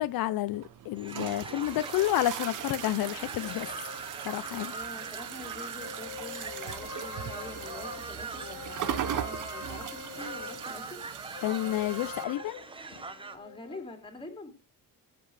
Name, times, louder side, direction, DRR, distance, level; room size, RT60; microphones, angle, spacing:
voice 1, 0.0-3.7 4.2-4.7 11.4-12.6, left 14 dB, 75° left, 0.6 m, -30 dB
sound 1, 0.5-12.2, right 10 dB, 60° right, 0.9 m, -39 dB
sound 2, 1.0-13.4, right 3 dB, 15° right, 0.7 m, -43 dB
sound 3, 3.4-5.4 5.8-10.7 11.3-13.9, left 7 dB, 55° left, 1.3 m, -45 dB
voice 2, 4.7-11.0 13.3-14.5, left 2 dB, 15° left, 2.5 m, -45 dB
19.5 x 7.8 x 3.3 m
cardioid pair, 175°, 36 cm